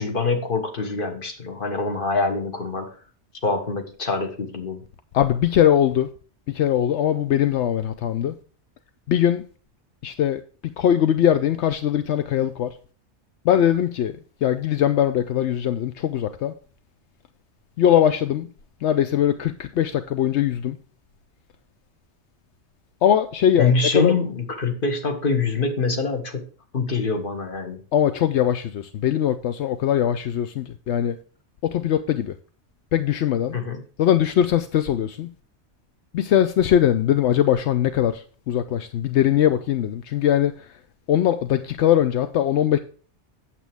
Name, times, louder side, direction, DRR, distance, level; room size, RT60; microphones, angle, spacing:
voice 1, 0.0-2.9 3.4-4.8 23.6-27.8 33.5-33.8, left 4 dB, 50° left, 1.5 m, -25 dB
voice 2, 5.1-6.1 6.5-8.3 9.1-9.5 10.0-10.4 10.8-12.7 13.4-14.1 14.4-16.5 17.8-18.5 18.8-20.8 23.0-24.1 27.9-31.2 31.6-32.3 32.9-33.6 34.0-35.3 36.1-40.7 41.1-42.8, left 10 dB, 80° left, 0.9 m, -21 dB
8.5 x 7.6 x 3.4 m
omnidirectional pair, 1.2 m